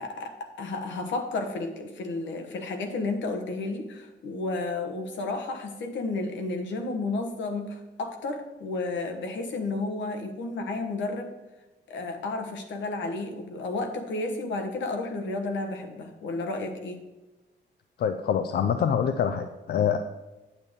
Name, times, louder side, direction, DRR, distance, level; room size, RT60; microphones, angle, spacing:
voice 1, 0.0-11.3 11.9-17.0, left 3 dB, 80° left, 5 dB, 1.2 m, -32 dB
voice 2, 18.0-20.0, left 8 dB, 60° left, 9 dB, 0.4 m, -25 dB
8.8 x 8.1 x 3.6 m, 1.1 s
wide cardioid pair, 165°, 19 cm